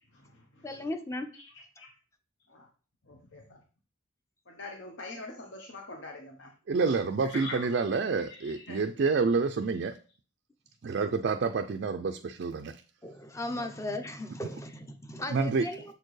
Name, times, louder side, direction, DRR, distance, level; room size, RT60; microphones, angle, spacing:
voice 1, 0.1-0.9 1.3-1.9 2.5-2.7 3.0-3.6 4.5-6.5 6.9-7.0 7.2-8.8, left 2 dB, 60° left, 0 dB, 0.9 m, -45 dB
voice 2, 0.6-1.3 13.0-15.9, left 1 dB, 15° left, 7 dB, 0.6 m, -37 dB
voice 3, 6.7-10.0 10.8-12.7 13.5-13.7 15.3-15.6, right 4 dB, 55° right, 6 dB, 0.4 m, -28 dB
6.9 x 4.4 x 3.1 m, 0.38 s
head